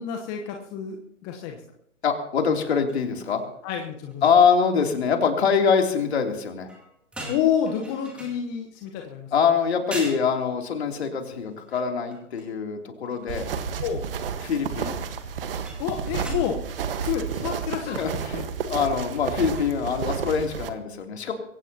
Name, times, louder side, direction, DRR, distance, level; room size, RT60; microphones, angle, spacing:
voice 1, 0.0-1.6 3.6-4.2 7.3-9.3 13.8-14.0 15.8-16.6 17.0-18.0 18.3-18.5, left 9 dB, 20° left, 2 dB, 1.1 m, -28 dB
voice 2, 2.0-3.4 4.2-6.7 9.3-13.5 14.4-15.0 17.9-18.4 18.6-21.3, left 6 dB, 50° left, 3 dB, 3.2 m, -24 dB
sound 1, 2.9-3.1 3.4-3.5 3.8-4.1 6.7-8.9 9.5-9.6 9.9-10.3 11.4-12.6 13.0-13.3 15.6-16.3, right 1 dB, 5° right, 2.4 m, -40 dB
sound 2, 13.3-20.7, right 7 dB, 45° right, 1.5 m, -31 dB
22.5 x 17.0 x 3.0 m, 0.71 s
figure-of-eight pair, 140°, 40 cm